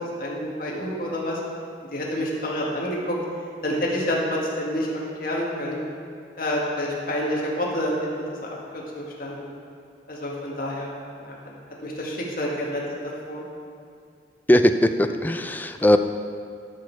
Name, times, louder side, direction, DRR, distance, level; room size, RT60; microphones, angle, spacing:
voice 1, 0.2-1.4 1.9-3.2 3.6-4.9 5.1-5.8 6.4-8.1 8.7-9.4 10.1-10.9 11.2-11.4 11.8-13.4, equal, 55° left, -4 dB, 1.9 m, -28 dB
voice 2, 14.5-16.0, left 1 dB, 10° left, 8 dB, 0.3 m, -19 dB
12.5 x 6.5 x 4.8 m, 2.3 s
head